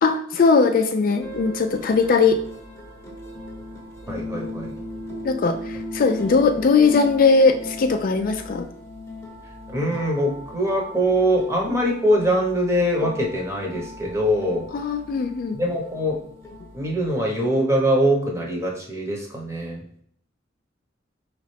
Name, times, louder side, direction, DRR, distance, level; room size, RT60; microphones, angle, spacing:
voice 1, 0.0-2.4 5.2-8.7 14.7-15.6, left 4 dB, 50° left, 6 dB, 0.4 m, -19 dB
sound 1, 1.2-18.0, left 1 dB, 15° left, 1.0 m, -38 dB
voice 2, 4.1-4.7 9.7-14.7 15.5-16.2 16.7-19.8, equal, 15° right, -1 dB, 1.0 m, -23 dB
5.0 x 3.2 x 3.3 m, 0.64 s
head